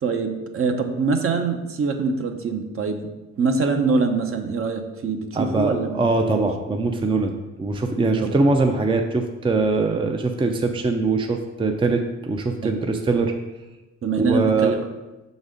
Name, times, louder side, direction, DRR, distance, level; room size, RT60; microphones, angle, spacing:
voice 1, 0.0-3.1 3.4-6.0 6.3-6.4 8.2-8.4 12.6-12.8 14.0-14.8, right 4 dB, 45° right, 6 dB, 0.8 m, -24 dB
voice 2, 5.3-7.3 7.6-13.3 14.2-14.7, right 3 dB, 15° right, 4 dB, 0.5 m, -22 dB
6.0 x 4.1 x 5.0 m, 1.1 s
cardioid pair, 90°, 30 cm